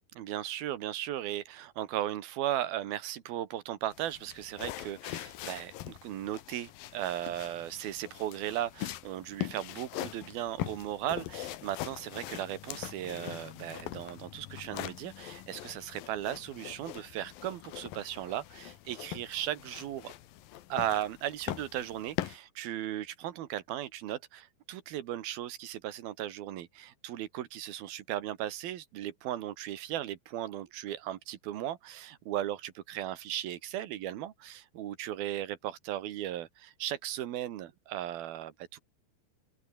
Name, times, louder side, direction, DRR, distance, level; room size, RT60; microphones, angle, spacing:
voice 1, 0.2-20.1 20.7-38.8, right 12 dB, 85° right, 3.4 m, -37 dB
sound 1, 3.9-22.4, left 14 dB, 75° left, 2.9 m, -42 dB
open air
omnidirectional pair, 4.2 m